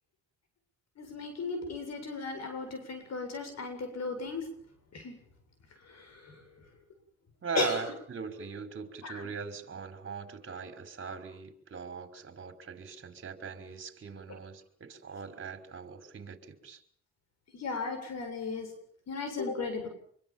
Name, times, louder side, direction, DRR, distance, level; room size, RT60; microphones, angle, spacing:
voice 1, 1.0-4.4 4.9-5.2 5.9-6.4 7.6-7.8 9.0-9.2 17.5-18.7 19.1-19.9, left 4 dB, 60° left, 6 dB, 7.7 m, -35 dB
voice 2, 7.4-16.8, right 6 dB, 40° right, 7 dB, 5.5 m, -40 dB
26.0 x 24.0 x 7.5 m, 0.64 s
cardioid pair, 90°, 30 cm